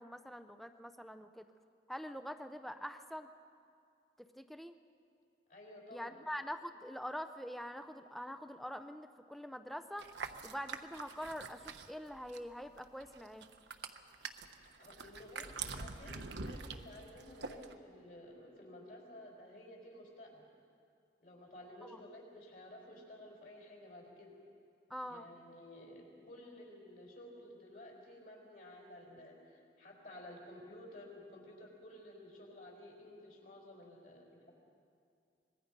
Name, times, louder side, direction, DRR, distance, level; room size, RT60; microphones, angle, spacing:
voice 1, 0.0-1.5 1.9-3.3 4.2-4.8 5.9-10.1 10.4-13.5 21.9-22.0 24.9-25.3, equal, ahead, 8 dB, 0.5 m, -44 dB
voice 2, 5.5-6.2 14.8-20.4 21.2-24.3 25.1-34.5, left 1 dB, 50° left, -1 dB, 5.0 m, -53 dB
sound 1, 10.0-12.5 12.8-17.7, right 5 dB, 80° right, 1.1 m, -45 dB
25.0 x 21.0 x 5.3 m, 2.4 s
head